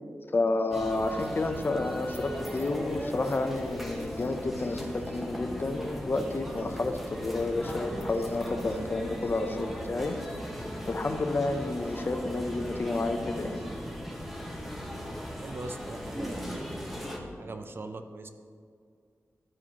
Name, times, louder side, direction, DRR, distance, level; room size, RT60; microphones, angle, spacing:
voice 1, 0.3-10.2 10.9-13.7, left 2 dB, 40° left, 7 dB, 0.5 m, -30 dB
sound 1, 0.7-17.2, equal, 5° right, 0.8 m, -38 dB
voice 2, 15.4-16.8 17.4-18.3, right 2 dB, 45° right, 8 dB, 0.4 m, -40 dB
12.0 x 5.0 x 2.8 m, 2.2 s
wide cardioid pair, 115°, 5 cm